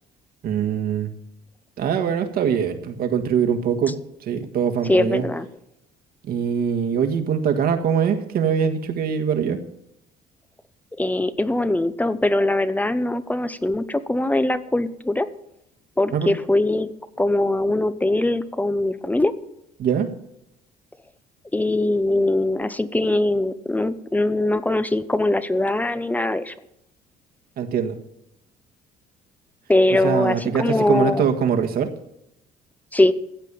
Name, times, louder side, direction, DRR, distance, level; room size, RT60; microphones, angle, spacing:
voice 1, 0.4-1.1 1.8-5.3 6.2-9.6 16.1-16.3 19.8-20.1 27.6-28.0 30.0-31.9, right 7 dB, 65° right, 6 dB, 1.7 m, -23 dB
voice 2, 4.9-5.5 11.0-15.3 16.0-16.9 17.2-19.3 21.5-26.5 29.7-31.3 32.9-33.1, left 2 dB, 10° left, 14 dB, 0.8 m, -21 dB
15.0 x 8.3 x 7.0 m, 0.82 s
cardioid pair, 110°, 17 cm